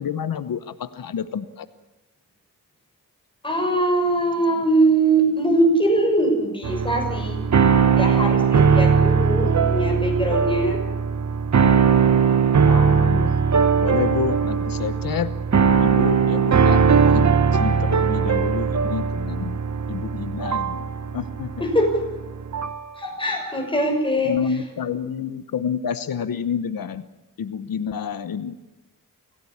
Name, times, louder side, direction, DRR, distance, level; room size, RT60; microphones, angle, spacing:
voice 1, 0.0-1.7 12.7-13.4 13.8-15.4 15.8-19.6 19.9-20.8 21.1-21.5 24.2-27.0 27.4-28.6, left 7 dB, 85° left, 12 dB, 1.0 m, -28 dB
voice 2, 3.4-7.5 8.0-10.8 21.6-22.0 23.0-24.3, right 2 dB, 15° left, 2 dB, 6.5 m, -21 dB
sound 1, 6.6-22.9, right 6 dB, 55° right, 1.0 m, -19 dB
25.5 x 17.0 x 8.6 m, 1.0 s
wide cardioid pair, 115°, 34 cm